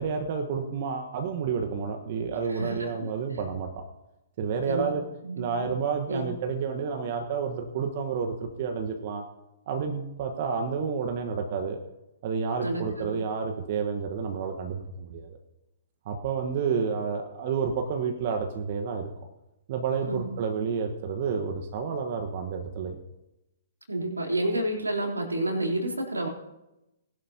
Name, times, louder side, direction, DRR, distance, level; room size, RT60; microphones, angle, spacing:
voice 1, 0.0-3.7 4.4-5.0 5.4-9.2 9.7-11.8 12.2-15.4 16.0-19.1 19.7-23.0, right 6 dB, 45° right, 4 dB, 1.3 m, -30 dB
voice 2, 2.5-3.1 4.7-4.9 5.2-5.7 6.1-6.3 12.6-13.2 20.0-20.3 23.9-26.3, right 1 dB, 85° right, 0 dB, 3.5 m, -30 dB
20.0 x 11.5 x 2.9 m, 0.94 s
figure-of-eight pair, 120°, 0 cm